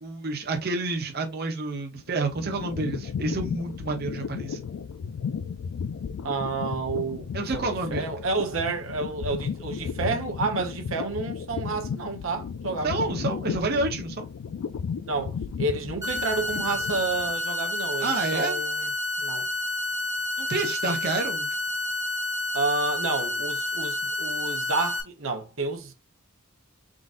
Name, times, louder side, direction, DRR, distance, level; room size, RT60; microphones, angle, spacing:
voice 1, 0.0-4.6 7.3-8.1 12.8-14.3 18.0-18.6 20.4-21.5, right 3 dB, 50° right, 0.8 m, -29 dB
sound 1, 1.9-17.4, left 6 dB, 90° left, 0.3 m, -34 dB
voice 2, 6.2-13.2 15.1-18.9 19.2-19.5 22.5-25.9, right 3 dB, 80° right, 1.0 m, -30 dB
sound 2, 16.0-25.0, left 2 dB, 15° right, 1.1 m, -29 dB
3.9 x 3.8 x 2.5 m
head